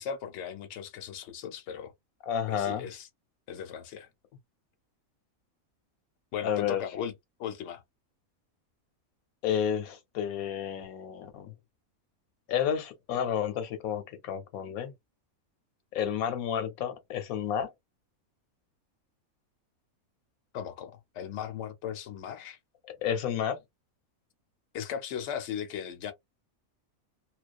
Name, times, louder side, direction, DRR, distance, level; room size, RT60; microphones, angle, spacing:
voice 1, 0.0-1.9 2.5-3.1 3.5-4.1 6.3-7.1 7.4-7.8 20.5-22.6 24.7-26.1, left 8 dB, 60° left, 0.9 m, -37 dB
voice 2, 2.3-2.9 6.4-6.8 9.4-11.5 12.5-14.9 15.9-17.7 22.9-23.6, left 9 dB, 80° left, 1.2 m, -31 dB
2.3 x 2.3 x 2.3 m
omnidirectional pair, 1.5 m